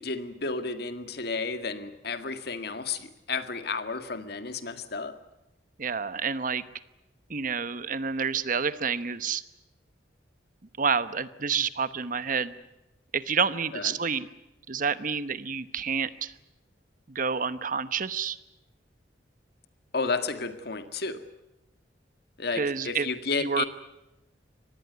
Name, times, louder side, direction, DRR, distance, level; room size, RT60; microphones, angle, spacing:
voice 1, 0.0-5.2 13.7-14.0 19.9-21.2 22.4-23.7, left 4 dB, 60° left, 9 dB, 2.0 m, -32 dB
voice 2, 5.8-6.6 7.3-9.4 10.8-12.5 13.1-14.3 14.7-16.3 17.1-18.4 22.5-23.1 23.4-23.6, right 6 dB, 50° right, 14 dB, 1.0 m, -28 dB
24.5 x 19.5 x 9.5 m, 0.93 s
head